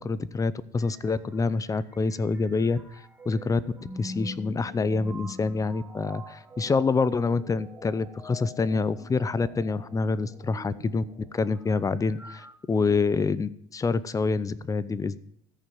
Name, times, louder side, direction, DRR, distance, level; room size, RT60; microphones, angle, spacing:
voice 1, 0.0-2.8 3.3-3.6 3.9-11.0 11.3-15.2, left 4 dB, 20° left, 17 dB, 0.6 m, -26 dB
sound 1, 0.8-12.5, left 1 dB, 10° right, 1.8 m, -45 dB
13.5 x 5.4 x 9.2 m, 0.71 s
supercardioid pair, 110°, 17 cm